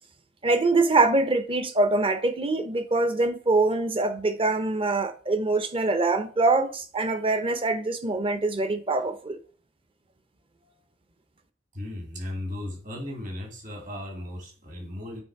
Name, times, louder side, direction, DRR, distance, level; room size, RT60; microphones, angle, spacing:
voice 1, 0.4-9.4, right 3 dB, 30° right, 0.7 m, -24 dB
voice 2, 11.7-15.2, left 1 dB, 45° right, 2.3 m, -36 dB
9.0 x 3.3 x 4.6 m
head